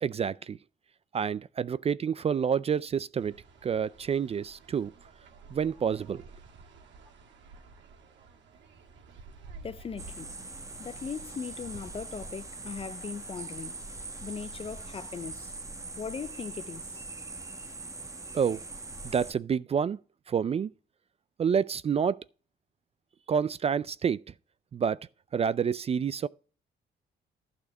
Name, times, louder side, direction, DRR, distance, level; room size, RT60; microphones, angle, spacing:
voice 1, 0.0-0.6 1.1-3.4 3.6-4.9 5.5-6.2 18.3-18.6 19.0-20.0 20.3-20.7 21.4-22.2 23.3-24.2 24.7-25.0 25.3-26.3, right 7 dB, 35° right, 0.3 m, -28 dB
sound 1, 3.2-15.3, right 4 dB, 75° right, 1.6 m, -53 dB
voice 2, 9.6-10.3 10.8-13.8 14.2-15.5 16.0-17.0, left 6 dB, 30° left, 0.4 m, -39 dB
sound 2, 10.0-19.3, right 3 dB, 15° right, 1.2 m, -42 dB
12.0 x 4.2 x 6.8 m
cardioid pair, 100°, 19 cm